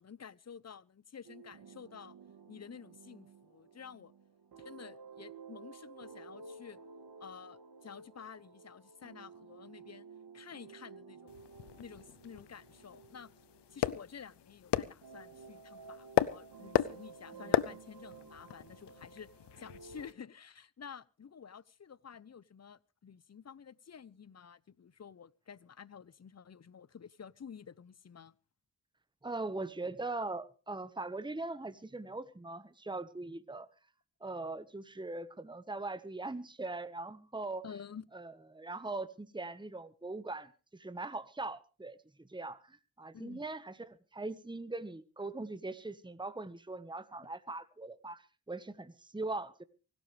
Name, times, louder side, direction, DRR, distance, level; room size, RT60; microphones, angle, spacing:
voice 1, 0.0-2.1 2.5-4.1 4.6-6.8 7.2-10.0 10.3-11.4 11.8-13.3 13.7-19.3 19.6-28.3 37.6-38.1 43.1-43.4, left 7 dB, 40° left, 0.8 m, -51 dB
sound 1, 1.2-14.5 15.0-20.1, right 5 dB, 65° right, 2.3 m, -54 dB
sound 2, 11.3-20.1, left 12 dB, 80° left, 0.7 m, -36 dB
voice 2, 29.2-33.7 34.2-37.6 38.1-49.6, right 2 dB, 10° right, 1.3 m, -41 dB
24.5 x 12.5 x 3.4 m
supercardioid pair, 45°, 41 cm